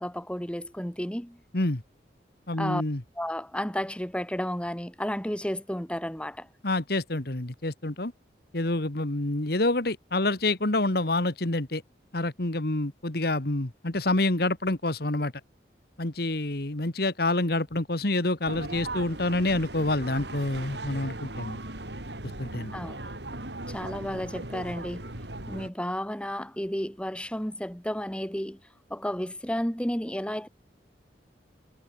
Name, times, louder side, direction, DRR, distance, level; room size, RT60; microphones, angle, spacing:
voice 1, 0.0-1.4 2.6-2.8 3.2-6.5 22.7-23.0 23.7-25.1 25.5-28.6 28.9-30.5, equal, 5° left, 2.3 m, -32 dB
voice 2, 2.5-3.0 6.6-8.1 8.5-11.8 12.1-15.3 16.0-21.6 22.4-22.7, left 2 dB, 60° left, 1.9 m, -27 dB
sound 1, 18.5-25.7, right 2 dB, 75° right, 5.6 m, -38 dB
head